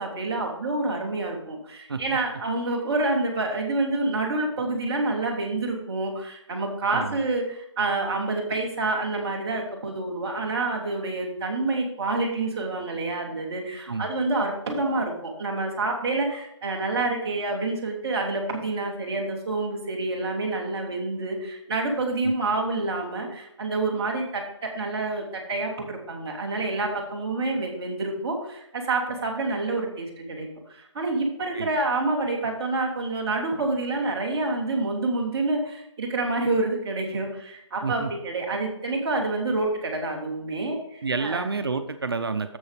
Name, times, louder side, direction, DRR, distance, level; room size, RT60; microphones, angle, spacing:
voice 1, 0.0-41.4, right 2 dB, 5° right, -7 dB, 0.8 m, -28 dB
voice 2, 41.0-42.6, right 4 dB, 50° right, 8 dB, 0.7 m, -29 dB
7.1 x 6.9 x 5.0 m, 0.77 s
hypercardioid pair, 175°, 16 cm